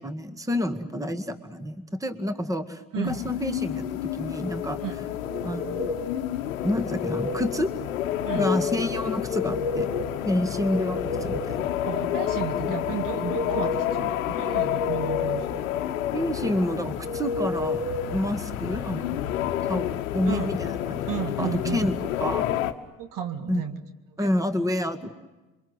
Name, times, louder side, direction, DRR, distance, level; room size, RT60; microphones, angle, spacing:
voice 1, 0.0-4.8 5.4-5.9 6.6-7.7 8.3-9.9 10.3-11.7 12.7-12.8 16.1-17.8 18.1-19.2 19.6-21.0 21.4-22.5 23.5-23.6 24.2-25.1, left 1 dB, 10° right, 9 dB, 1.9 m, -28 dB
sound 1, 3.0-22.7, left 11 dB, 80° left, 1.1 m, -30 dB
sound 2, 5.3-6.1 6.6-7.5 9.1-10.1 10.4-11.5 13.0-14.0 14.4-15.4 17.0-18.1, left 3 dB, 80° right, 6.2 m, -32 dB
voice 2, 11.8-15.7 20.3-20.5 21.1-21.8 23.0-23.8 24.1-24.3, right 9 dB, 55° right, 8 dB, 2.1 m, -33 dB
28.0 x 23.5 x 8.1 m, 1.1 s
hypercardioid pair, 55°, 40 cm